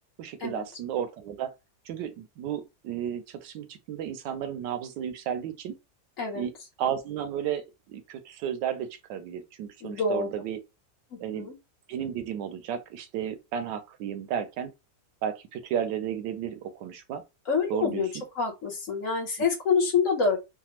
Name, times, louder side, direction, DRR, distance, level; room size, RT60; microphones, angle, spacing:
voice 1, 0.2-1.5 1.9-5.8 6.3-6.5 6.8-10.6 11.2-11.5 11.9-14.7 15.2-17.2 17.7-18.0, right 9 dB, 80° right, 1.2 m, -33 dB
voice 2, 9.8-10.3 11.1-11.5 17.5-18.1 18.3-20.4, left 5 dB, 55° left, 1.1 m, -27 dB
3.3 x 2.0 x 2.9 m
omnidirectional pair, 1.9 m